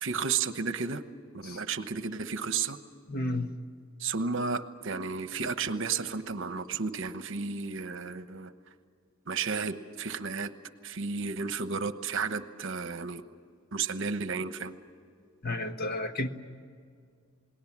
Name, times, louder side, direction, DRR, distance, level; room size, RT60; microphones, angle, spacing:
voice 1, 0.0-1.0 1.3-2.8 4.0-8.5 9.3-10.5 10.8-13.2 13.7-14.7, right 5 dB, 60° right, 10 dB, 1.1 m, -32 dB
voice 2, 3.1-3.5 15.4-16.3, left 1 dB, 45° left, 7 dB, 1.3 m, -32 dB
28.5 x 20.0 x 7.4 m, 2.2 s
head